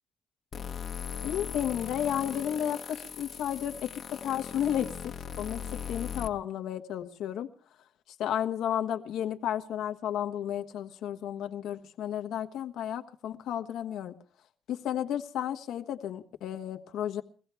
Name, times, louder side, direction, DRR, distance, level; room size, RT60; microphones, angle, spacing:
sound 1, 0.5-6.3, left 7 dB, 50° left, 1.1 m, -39 dB
voice 1, 1.2-7.5 8.2-14.1 14.7-17.2, left 10 dB, 80° left, 6 dB, 1.2 m, -33 dB
22.5 x 16.0 x 3.4 m, 0.41 s
cardioid pair, 90°, 0 cm